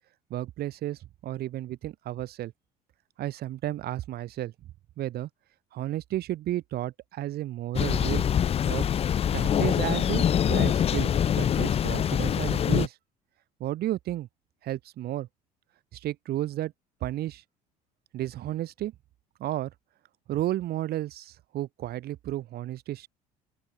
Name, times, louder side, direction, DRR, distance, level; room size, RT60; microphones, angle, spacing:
voice 1, 0.3-2.5 3.2-4.5 5.0-5.3 5.7-8.3 8.6-8.9 9.3-13.0 13.6-14.3 14.6-15.3 15.9-16.7 17.0-17.4 18.1-18.9 19.4-19.7 20.3-23.1, right 14 dB, 55° right, 1.9 m, -32 dB
Thunder, 7.7-12.9, left 9 dB, 30° left, 0.5 m, -24 dB
open air
hypercardioid pair, 60°, 20 cm